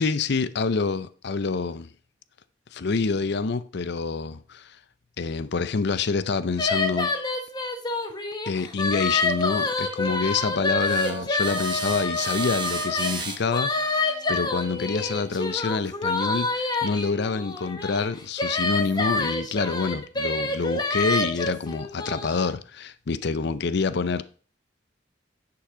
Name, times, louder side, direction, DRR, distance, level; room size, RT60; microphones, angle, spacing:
voice 1, 0.0-1.9 2.7-4.8 5.2-7.1 8.5-24.2, left 4 dB, 65° left, 0.6 m, -27 dB
sound 1, 6.6-13.1 13.5-22.5, left 3 dB, 25° left, 1.3 m, -27 dB
sound 2, 10.7-15.9, right 4 dB, 25° right, 1.4 m, -37 dB
10.0 x 5.8 x 4.9 m
head